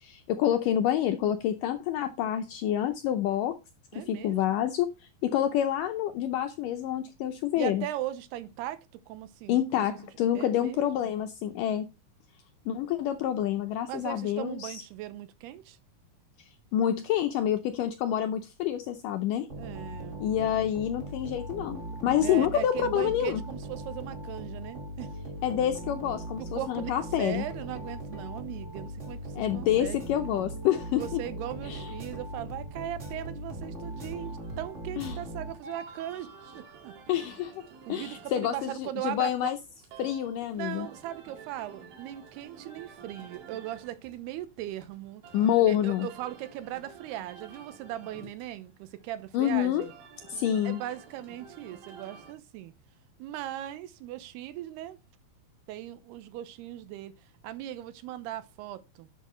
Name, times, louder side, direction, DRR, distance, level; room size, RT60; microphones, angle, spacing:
voice 1, 0.0-3.6 4.1-4.9 5.2-7.9 9.5-11.9 12.7-14.8 16.7-19.5 20.2-23.4 25.4-27.5 29.4-31.2 31.7-31.9 35.0-35.2 37.1-37.5 37.9-39.6 40.0-40.9 45.3-46.1 49.3-49.9 50.3-50.8, left 11 dB, 80° left, 1.9 m, -27 dB
voice 2, 3.9-4.6 7.5-9.8 10.3-11.1 13.9-15.8 19.6-20.3 22.2-25.1 26.4-26.9 27.2-30.1 30.9-36.9 37.9-39.3 40.6-45.2 45.7-49.9 50.6-52.7 53.2-55.0 55.7-57.1 57.4-59.1, right 13 dB, 85° right, 2.9 m, -38 dB
sound 1, 19.5-35.9, right 1 dB, 50° right, 0.8 m, -39 dB
sound 2, 33.8-52.3, right 5 dB, 70° right, 4.0 m, -51 dB
11.5 x 6.7 x 3.1 m
omnidirectional pair, 4.5 m